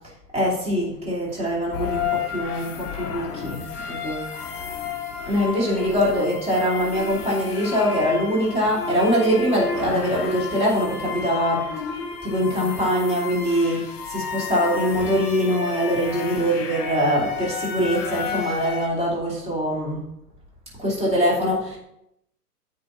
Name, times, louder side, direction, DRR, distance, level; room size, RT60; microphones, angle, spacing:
voice 1, 0.3-3.6 3.9-4.3 5.2-11.7 12.2-20.0 20.8-21.8, equal, 15° right, -6 dB, 2.7 m, -23 dB
sound 1, 1.7-18.9, left 6 dB, 35° left, 1.5 m, -32 dB
14.5 x 5.3 x 2.8 m, 0.82 s
figure-of-eight pair, 115°, 48 cm